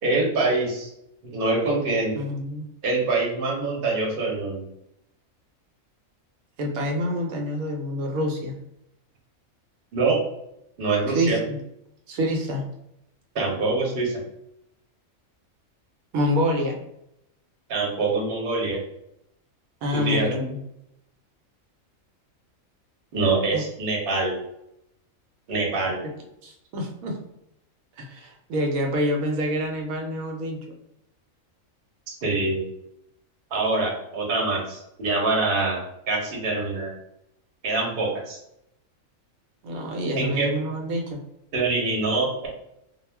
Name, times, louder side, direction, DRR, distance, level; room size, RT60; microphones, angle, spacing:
voice 1, 0.0-0.9 1.3-2.1 2.8-4.6 9.9-10.2 10.8-11.4 13.3-14.1 17.7-18.8 19.9-20.4 23.1-24.4 25.5-26.0 32.1-32.6 33.5-35.8 36.1-36.9 37.6-38.4 40.1-40.5 41.5-42.5, right 3 dB, 50° right, -2 dB, 0.9 m, -24 dB
voice 2, 2.1-2.7 6.6-8.5 11.1-11.6 12.1-12.6 16.1-16.8 19.8-20.6 23.5-23.6 26.4-27.2 28.0-30.7 39.6-41.2, equal, 85° right, 2 dB, 1.0 m, -27 dB
2.3 x 2.1 x 3.2 m, 0.80 s
omnidirectional pair, 1.4 m